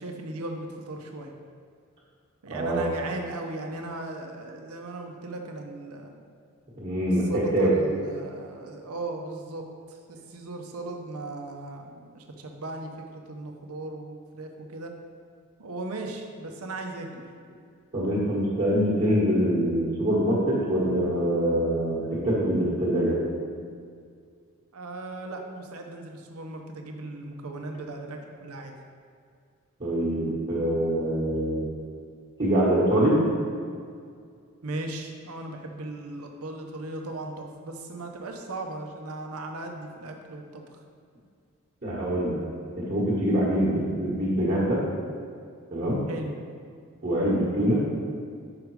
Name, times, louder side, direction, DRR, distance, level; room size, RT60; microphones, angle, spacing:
voice 1, 0.0-1.3 2.4-6.2 7.3-14.9 15.6-17.1 24.7-28.7 34.6-40.6 46.1-46.3, right 2 dB, 85° right, 3 dB, 0.8 m, -37 dB
voice 2, 2.5-2.8 6.8-7.7 17.9-23.2 29.8-31.7 32.4-33.2 41.8-42.4 42.7-44.8 45.7-46.0 47.0-47.8, equal, 35° right, -8 dB, 1.3 m, -24 dB
5.8 x 5.1 x 4.7 m, 2.2 s
head